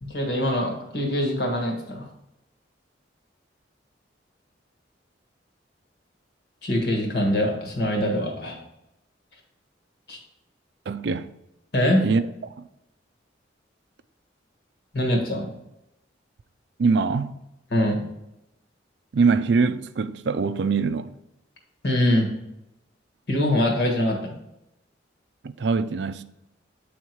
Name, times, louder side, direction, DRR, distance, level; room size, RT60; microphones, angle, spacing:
voice 1, 0.0-2.1 6.6-8.6 10.1-10.2 11.7-12.1 14.9-15.5 17.7-18.0 21.8-22.3 23.3-24.3, left 1 dB, 60° left, 1.5 m, -23 dB
voice 2, 10.9-11.3 12.0-12.2 12.6-12.7 16.8-17.4 19.1-21.1 25.4-26.2, right 4 dB, 65° right, 0.4 m, -23 dB
8.5 x 3.7 x 4.6 m
head